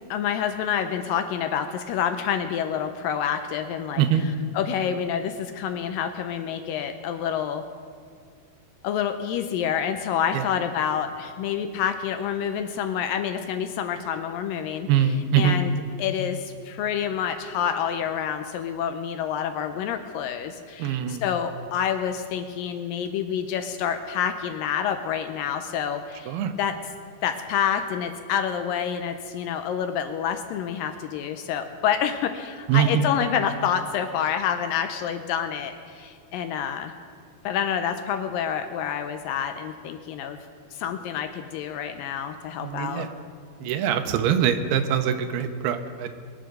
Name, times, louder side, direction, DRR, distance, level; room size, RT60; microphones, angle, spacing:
voice 1, 0.1-4.0 4.5-7.6 8.8-14.9 15.4-15.7 16.0-26.7 27.2-36.9 37.4-40.4 40.7-43.1, left 8 dB, 80° left, 8 dB, 2.1 m, -28 dB
voice 2, 14.9-15.6 20.8-21.2 26.3-26.5 32.7-33.0 42.6-43.1 43.6-46.1, right 9 dB, 85° right, 8 dB, 2.8 m, -23 dB
22.0 x 7.7 x 6.7 m, 2.1 s
omnidirectional pair, 4.5 m